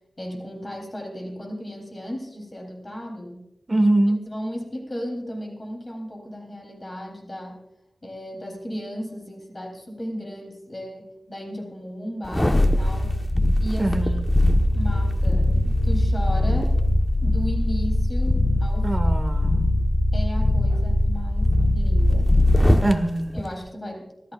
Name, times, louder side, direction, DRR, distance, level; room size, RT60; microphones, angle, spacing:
voice 1, 0.2-3.5 4.2-7.6 8.0-13.1 13.6-14.5 14.7-16.8 17.2-18.9 20.1-22.4 23.3-24.3, equal, 30° left, 1 dB, 3.7 m, -35 dB
voice 2, 3.7-4.2 13.8-14.3 18.8-19.7 22.8-23.4, right 1 dB, 30° right, 7 dB, 1.7 m, -23 dB
sound 1, 12.2-22.9 23.4-23.5, left 1 dB, 15° left, 1.3 m, -20 dB
27.0 x 14.0 x 2.5 m, 0.93 s
wide cardioid pair, 75°, 0 cm